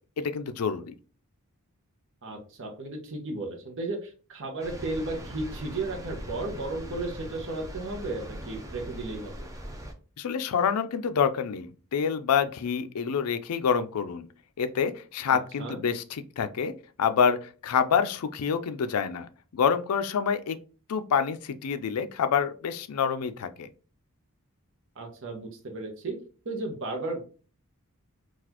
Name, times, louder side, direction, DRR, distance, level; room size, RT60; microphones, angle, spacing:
voice 1, 0.2-0.9 10.2-14.3 14.6-16.7 17.0-20.6 20.9-23.7, left 7 dB, 75° left, 11 dB, 0.4 m, -27 dB
voice 2, 2.2-9.5 15.3-15.8 25.0-26.2 26.4-27.2, right 2 dB, 60° right, 2 dB, 0.9 m, -34 dB
sound 1, 4.6-9.9, equal, 15° right, 0.6 m, -40 dB
3.9 x 2.4 x 2.8 m, 0.37 s
head